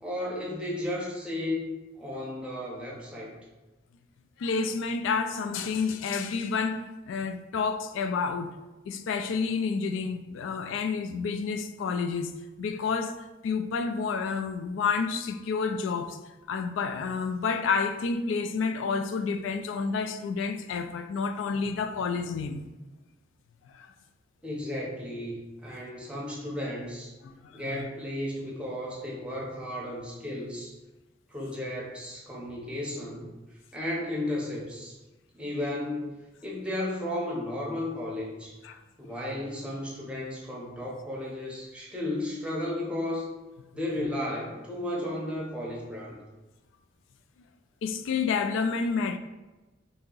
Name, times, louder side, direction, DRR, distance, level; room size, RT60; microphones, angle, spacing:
voice 1, 0.0-1.7 1.9-3.3 24.4-27.1 27.5-30.7 31.3-33.3 33.7-35.0 35.3-36.2 36.4-38.6 39.0-43.3 43.7-46.2, left 1 dB, 5° right, 0.7 m, -34 dB
voice 2, 4.4-8.6 8.9-16.2 16.5-22.7 23.7-23.9 27.2-27.8 38.6-38.8 47.8-49.2, left 5 dB, 75° left, 0.3 m, -30 dB
2.9 x 2.7 x 3.8 m
head